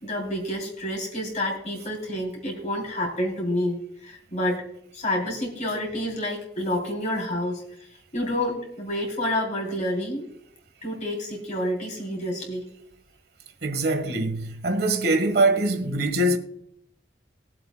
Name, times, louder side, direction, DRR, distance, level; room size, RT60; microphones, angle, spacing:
voice 1, 0.0-4.6 4.9-7.9 8.1-10.3 10.8-12.6, left 1 dB, 40° left, 3.1 m, -29 dB
voice 2, 13.6-16.4, right 2 dB, 60° right, 1.5 m, -23 dB
21.0 x 7.8 x 2.2 m
head